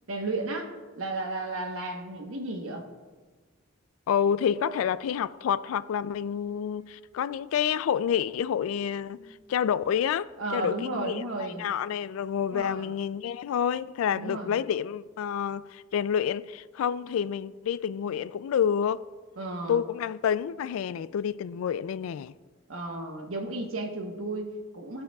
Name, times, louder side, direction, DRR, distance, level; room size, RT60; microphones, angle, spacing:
voice 1, 0.1-2.8 10.4-11.7 12.5-12.8 14.1-14.6 19.4-19.8 22.7-25.0, right 2 dB, 85° right, 1.1 m, -34 dB
voice 2, 4.1-9.2 9.5-19.1 19.7-22.3, left 8 dB, 85° left, 0.3 m, -28 dB
sound 1, 4.5-11.0, right 2 dB, 45° right, 1.9 m, -52 dB
15.5 x 8.5 x 2.3 m
head